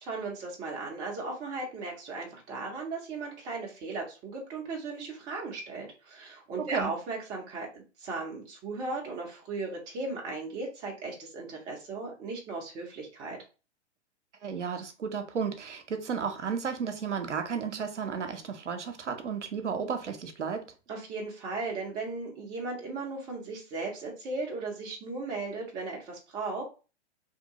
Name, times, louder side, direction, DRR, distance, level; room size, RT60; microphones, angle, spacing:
voice 1, 0.0-13.4 20.9-26.6, right 3 dB, 15° right, 0.4 m, -36 dB
voice 2, 14.4-20.7, right 6 dB, 80° right, 0.6 m, -33 dB
2.7 x 2.2 x 2.7 m
figure-of-eight pair, 115°, 35 cm